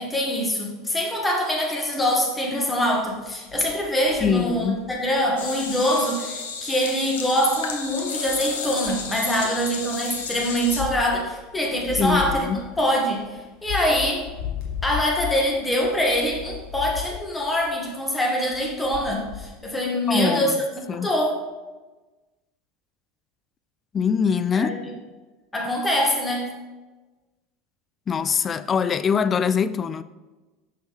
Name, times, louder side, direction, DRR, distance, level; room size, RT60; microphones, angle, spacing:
voice 1, 0.0-13.2 13.6-14.3 14.8-21.4 24.5-24.9 25.5-26.5, equal, 15° left, 1.6 m, -24 dB
sound 1, 3.0-5.8 7.5-8.4 8.7-9.6 10.1-17.8 18.5-19.6, left 10 dB, 55° left, 1.8 m, -36 dB
voice 2, 4.2-4.9 12.0-12.7 20.1-20.6 20.9-21.1 23.9-24.8 28.1-30.0, left 6 dB, 30° left, 0.3 m, -23 dB
sound 2, 5.4-10.8, left 5 dB, 75° left, 0.9 m, -32 dB
6.4 x 6.1 x 3.6 m
figure-of-eight pair, 75°, 0 cm